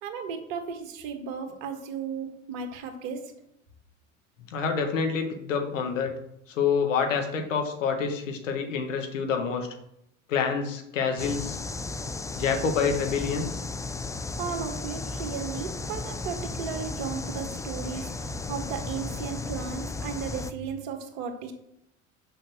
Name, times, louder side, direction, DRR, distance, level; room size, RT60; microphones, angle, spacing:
voice 1, 0.0-3.2 14.4-18.1 18.5-21.5, right 6 dB, 60° right, 5 dB, 1.8 m, -35 dB
voice 2, 4.5-6.1 6.5-9.7 10.3-11.6 12.4-13.6, left 6 dB, 75° left, 4 dB, 1.6 m, -27 dB
sound 1, 11.2-20.5, left 3 dB, 10° left, 0.5 m, -35 dB
6.9 x 5.7 x 6.3 m, 0.79 s
figure-of-eight pair, 70°, 38 cm